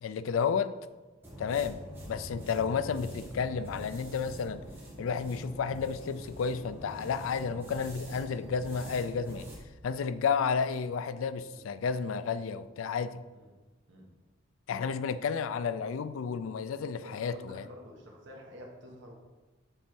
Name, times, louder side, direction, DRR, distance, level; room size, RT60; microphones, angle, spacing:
voice 1, 0.0-0.8 1.4-4.6 5.0-9.5 9.8-13.2 14.7-17.7, left 6 dB, 90° left, 13 dB, 0.4 m, -32 dB
sound 1, 1.2-9.6, equal, 10° right, 1.3 m, -45 dB
voice 2, 17.0-19.1, equal, 65° right, -1 dB, 1.3 m, -50 dB
6.8 x 3.4 x 4.6 m, 1.2 s
head